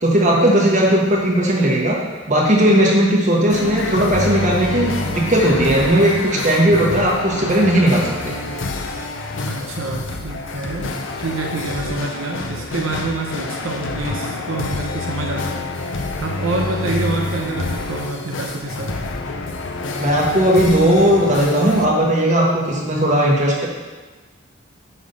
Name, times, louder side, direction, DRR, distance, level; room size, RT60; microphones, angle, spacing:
voice 1, 0.0-2.0 2.3-8.4 20.0-23.7, right 1 dB, 40° right, -3 dB, 1.4 m, -16 dB
sound 1, 3.5-21.9, left 2 dB, 70° left, 0.6 m, -27 dB
voice 2, 9.5-15.6 16.2-19.0, right 2 dB, 85° right, 0 dB, 0.8 m, -27 dB
8.5 x 3.5 x 5.5 m, 1.3 s
head